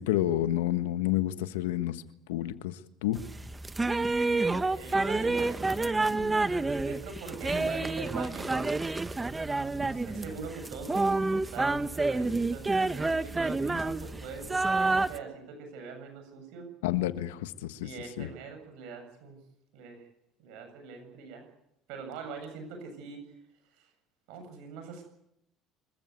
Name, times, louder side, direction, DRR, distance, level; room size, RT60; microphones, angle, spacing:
voice 1, 0.0-2.0 2.3-2.7 3.0-3.2 16.8-17.9 18.2-18.3, left 14 dB, 85° left, 1.4 m, -29 dB
sound 1, 3.2-15.2, right 3 dB, 20° right, 1.1 m, -29 dB
voice 2, 4.3-8.8 9.8-16.7 17.8-19.4 19.7-20.0 20.4-21.5 21.9-23.2 23.7-23.9 24.3-25.1, right 4 dB, 75° right, 7.8 m, -43 dB
26.0 x 14.5 x 9.6 m
hypercardioid pair, 75°, 0 cm